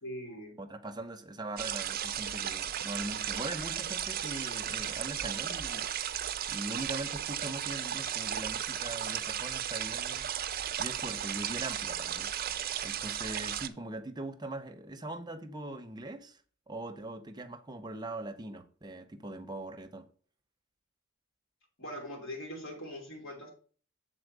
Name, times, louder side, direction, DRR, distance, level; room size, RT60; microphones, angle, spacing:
voice 1, 0.0-0.6 21.8-23.5, equal, 70° left, 3.1 m, -41 dB
voice 2, 0.6-5.9 6.5-10.3 10.8-12.3 12.8-16.4 16.7-20.0, right 2 dB, 20° right, 0.8 m, -41 dB
sound 1, 1.6-13.7, right 10 dB, 50° right, 0.6 m, -35 dB
7.2 x 4.3 x 6.6 m
head